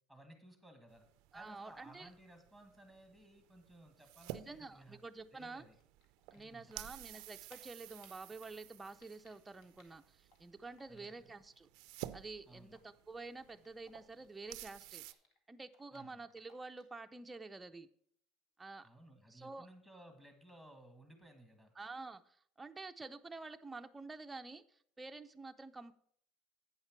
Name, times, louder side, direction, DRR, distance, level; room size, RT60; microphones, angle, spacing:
voice 1, 0.1-1.0 1.3-5.0 5.3-5.7 6.3-6.9 10.9-11.3 12.5-12.8 15.9-16.2 18.8-21.7, right 1 dB, 10° left, 5 dB, 1.6 m, -59 dB
sound 1, 0.9-15.1, right 15 dB, 75° right, 0.4 m, -53 dB
voice 2, 1.3-2.1 4.3-5.6 6.3-11.7 12.1-15.1 15.5-17.9 18.6-18.9 19.3-19.7 21.8-25.9, right 3 dB, 15° right, 8 dB, 0.5 m, -49 dB
Typing, 5.4-6.8 7.1-11.5 11.8-15.4 15.7-17.0, left 3 dB, 60° left, 1.9 m, -68 dB
8.7 x 5.6 x 5.9 m, 0.65 s
supercardioid pair, 120°, 0 cm